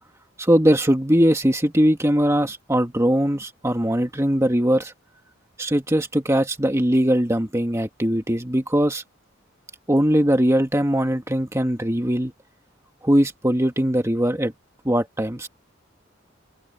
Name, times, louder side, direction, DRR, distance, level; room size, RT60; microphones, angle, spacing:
voice 1, 0.4-4.9 5.6-9.0 9.9-12.3 13.0-14.5 14.8-15.5, equal, 15° right, 1.7 m, -20 dB
head